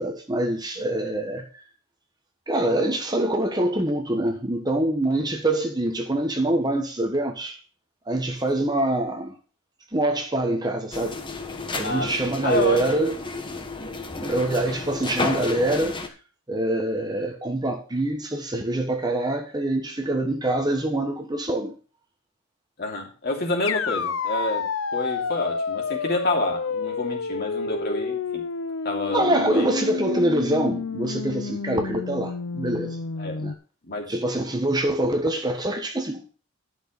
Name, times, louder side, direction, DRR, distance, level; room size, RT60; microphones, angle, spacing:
voice 1, 0.0-1.6 2.5-7.6 8.1-9.3 9.9-11.2 11.7-13.2 14.2-16.0 16.5-21.7 29.1-33.0 33.4-33.5 34.1-36.3, right 1 dB, 20° right, 1.2 m, -25 dB
sound 1, 10.9-16.1, left 3 dB, 25° left, 1.2 m, -32 dB
voice 2, 11.8-12.8 22.8-24.7 24.9-28.4 28.8-29.7 33.2-33.4 33.8-34.1, left 2 dB, 50° left, 2.9 m, -28 dB
sound 2, 23.6-33.5, left 4 dB, 65° left, 0.6 m, -29 dB
11.5 x 6.2 x 5.3 m
head